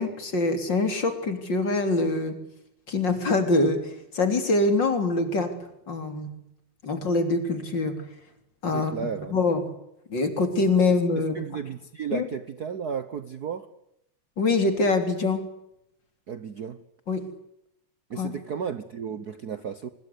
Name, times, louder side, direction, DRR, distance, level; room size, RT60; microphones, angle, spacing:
voice 1, 0.0-2.4 2.9-5.5 5.9-6.3 6.8-8.0 8.6-8.9 9.3-9.6 10.1-11.3 12.1-12.3 14.4-15.4 17.1-17.2 18.2-18.3, left 3 dB, 35° left, 8 dB, 3.8 m, -24 dB
voice 2, 8.7-9.4 11.2-13.7 16.3-16.8 18.1-19.9, right 7 dB, 75° right, 12 dB, 0.9 m, -34 dB
24.5 x 22.0 x 8.3 m, 0.81 s
omnidirectional pair, 3.4 m